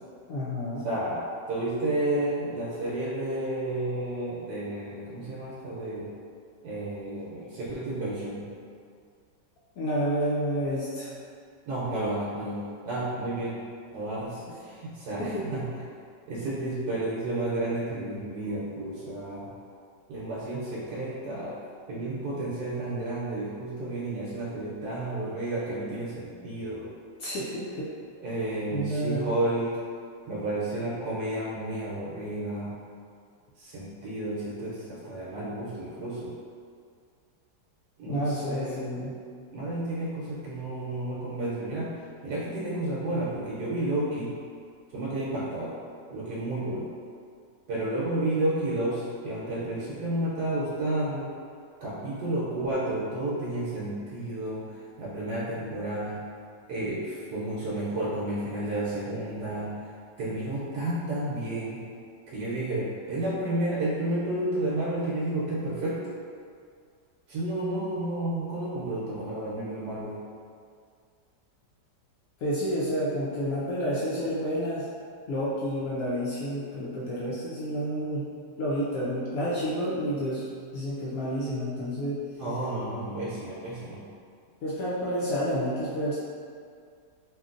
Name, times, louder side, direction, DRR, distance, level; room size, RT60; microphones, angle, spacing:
voice 1, 0.3-0.9 9.8-11.1 15.2-15.4 27.2-27.9 28.7-29.4 38.1-39.1 72.4-74.9 75.3-78.2 78.6-80.5 80.7-82.2 84.6-86.2, equal, 75° left, -8 dB, 0.8 m, -29 dB
voice 2, 0.8-6.1 6.6-8.5 11.7-13.6 13.9-15.7 16.3-19.5 20.1-21.6 21.9-26.9 28.2-29.8 30.3-32.8 33.6-36.3 38.0-39.1 39.5-41.9 42.2-44.4 44.9-45.8 46.1-46.9 47.7-51.3 51.8-54.7 55.0-56.2 56.7-59.8 60.2-61.8 62.3-66.1 67.3-70.2 82.4-84.1, right 1 dB, 75° right, -8 dB, 1.1 m, -31 dB
3.0 x 2.5 x 2.4 m, 2.2 s
omnidirectional pair, 1.9 m